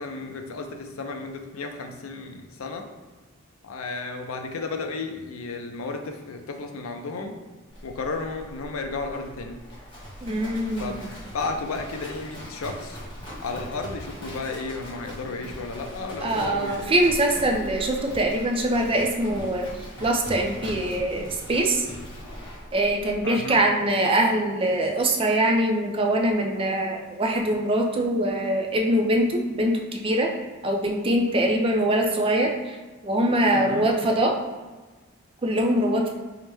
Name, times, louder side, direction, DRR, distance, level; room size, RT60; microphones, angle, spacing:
voice 1, 0.0-2.9 3.6-7.4 7.8-9.6 10.8-11.0 11.3-13.0 13.4-17.0 23.2-23.6 33.5-33.9, left 3 dB, 80° left, 4 dB, 0.5 m, -33 dB
Livestock farm animals working animals, 7.7-23.2, equal, 25° left, 1.1 m, -40 dB
voice 2, 10.2-11.0 16.2-19.7 20.0-21.9 22.7-30.3 30.6-32.8 33.0-34.4 35.4-36.1, right 1 dB, 25° right, 1 dB, 0.4 m, -23 dB
4.6 x 2.1 x 3.3 m, 1.3 s
head